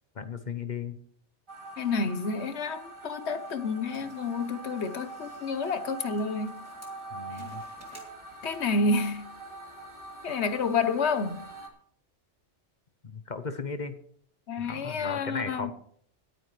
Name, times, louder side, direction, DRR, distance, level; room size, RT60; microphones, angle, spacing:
voice 1, 0.2-1.0 7.1-7.6 13.0-13.9 14.6-15.7, left 5 dB, 40° left, 1.0 m, -36 dB
sound 1, 1.5-11.7, right 2 dB, 25° right, 2.2 m, -43 dB
voice 2, 1.8-6.5 7.3-7.5 8.4-9.3 10.2-11.4 14.5-15.7, left 4 dB, 65° left, 1.2 m, -29 dB
sound 2, 3.3-8.8, equal, 10° left, 2.8 m, -55 dB
20.0 x 9.0 x 3.3 m
omnidirectional pair, 1.2 m